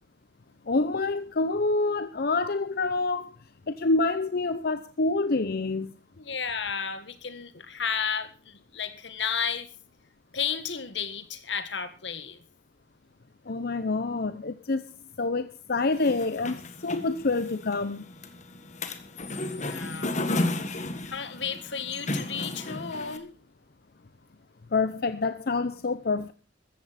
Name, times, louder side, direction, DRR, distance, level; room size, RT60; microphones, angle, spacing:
voice 1, 0.7-3.3 3.7-5.9 13.5-14.8 15.2-18.0 24.7-26.3, left 3 dB, 60° left, 0.7 m, -27 dB
voice 2, 6.2-9.7 10.3-12.4 19.5-20.1 21.0-23.3, left 7 dB, 85° left, 1.9 m, -33 dB
sound 1, 15.9-23.2, left 2 dB, 45° left, 1.7 m, -33 dB
15.5 x 14.0 x 4.2 m
head